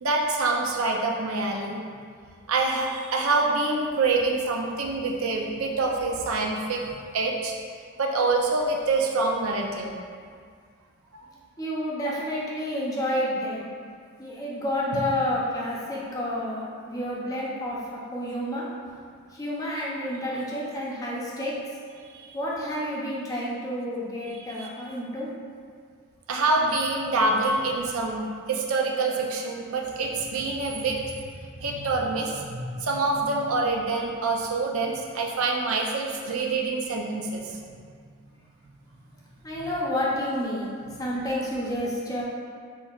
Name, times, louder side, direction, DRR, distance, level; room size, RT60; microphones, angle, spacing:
voice 1, 0.0-1.8 2.5-6.8 7.1-7.5 8.0-10.0 14.9-15.0 22.1-22.3 24.4-24.7 26.3-31.0 31.6-37.6 39.6-39.7, right 3 dB, 85° right, 0 dB, 0.5 m, -26 dB
voice 2, 11.6-13.7 14.2-18.7 19.3-21.6 22.3-25.3 39.4-40.7 41.0-42.2, left 1 dB, 15° left, -6 dB, 0.6 m, -29 dB
4.5 x 4.3 x 2.4 m, 2.1 s
head